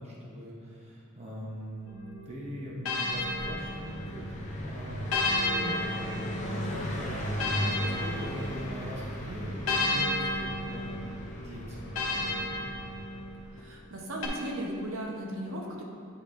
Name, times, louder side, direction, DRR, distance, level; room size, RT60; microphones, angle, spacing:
voice 1, 0.0-1.9 2.3-5.2 5.6-11.0 11.4-12.7, equal, 35° right, -4 dB, 0.8 m, -41 dB
sound 1, 1.9-4.3 5.1-8.9 9.7-13.4 14.2-14.3, left 2 dB, 90° left, 0.9 m, -33 dB
Car passing by, 3.1-13.7, equal, 35° left, 0.8 m, -37 dB
voice 2, 13.5-15.8, right 1 dB, 75° right, -1 dB, 0.9 m, -36 dB
8.8 x 5.0 x 2.6 m, 2.4 s
head